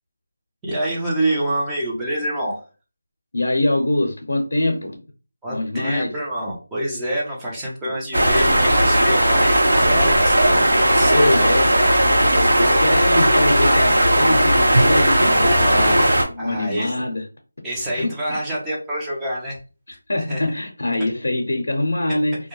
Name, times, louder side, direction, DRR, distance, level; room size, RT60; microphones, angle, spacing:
voice 1, 0.6-2.6 5.4-11.5 15.3-16.1 16.4-16.9 17.6-19.6 20.3-20.4, right 1 dB, 5° right, -5 dB, 0.6 m, -26 dB
voice 2, 3.3-5.0 5.5-6.1 7.8-7.9 9.0-9.6 11.1-12.0 12.6-17.3 17.9-18.4 19.9-22.4, left 1 dB, 70° left, 2 dB, 0.6 m, -24 dB
sound 1, 8.1-16.2, right 1 dB, 70° right, 1.0 m, -16 dB
2.2 x 2.1 x 3.0 m, 0.35 s
figure-of-eight pair, 170°, 0 cm